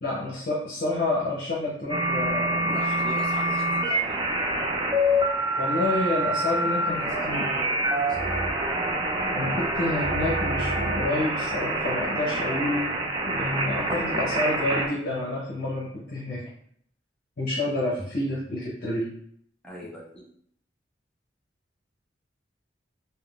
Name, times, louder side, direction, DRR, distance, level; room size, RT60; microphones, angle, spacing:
voice 1, 0.0-2.8 3.1-3.2 5.6-7.5 9.3-16.4 17.4-19.1, left 2 dB, 50° left, -6 dB, 0.7 m, -29 dB
sound 1, 1.9-14.9, right 1 dB, 25° right, 0.4 m, -26 dB
voice 2, 2.7-4.2 6.9-8.4 19.6-20.3, equal, 5° left, -5 dB, 0.7 m, -40 dB
3.5 x 2.2 x 2.3 m, 0.66 s
head